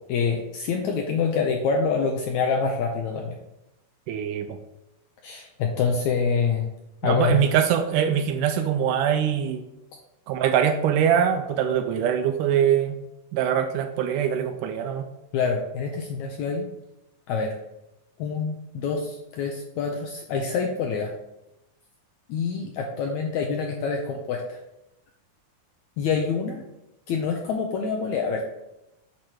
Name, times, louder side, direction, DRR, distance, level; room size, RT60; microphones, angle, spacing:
voice 1, 0.1-3.4 5.2-6.7 7.0-7.4 15.3-16.7 17.3-17.5 18.2-21.1 22.3-24.6 26.0-26.6 27.1-28.4, left 5 dB, 80° left, 2 dB, 1.7 m, -26 dB
voice 2, 4.1-4.6 7.0-9.6 10.3-13.0 13.3-15.1, right 9 dB, 80° right, 7 dB, 1.9 m, -23 dB
8.6 x 2.9 x 6.2 m, 0.89 s
omnidirectional pair, 4.0 m